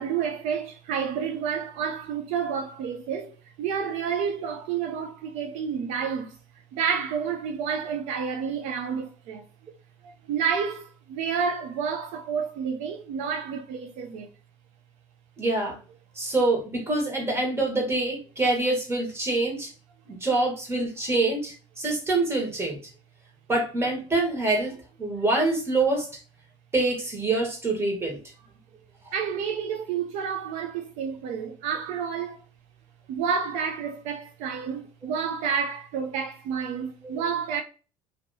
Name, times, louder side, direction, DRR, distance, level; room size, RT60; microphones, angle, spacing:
voice 1, 0.0-3.3 3.6-6.4 6.7-9.4 10.0-14.3 29.1-32.4 33.1-37.6, right 7 dB, 75° right, 0.5 m, -29 dB
voice 2, 15.4-15.8 16.1-19.7 20.1-22.8 23.5-26.1 26.7-28.2 37.0-37.1, right 2 dB, 20° right, 1.6 m, -25 dB
2.9 x 2.8 x 2.6 m
supercardioid pair, 105°, 12 cm